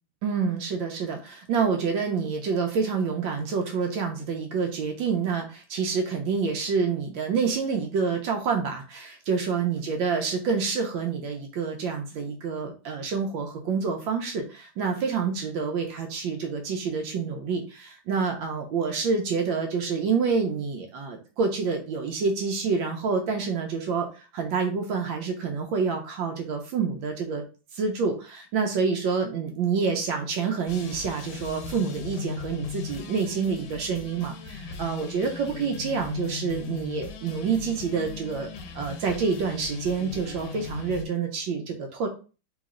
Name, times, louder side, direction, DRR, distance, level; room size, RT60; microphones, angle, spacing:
voice 1, 0.2-27.4 27.7-38.5 38.7-42.1, right 5 dB, 75° right, 3 dB, 1.4 m, -27 dB
sound 1, 30.7-41.1, left 5 dB, 90° left, 1.6 m, -38 dB
3.7 x 3.1 x 3.7 m, 0.34 s
omnidirectional pair, 2.2 m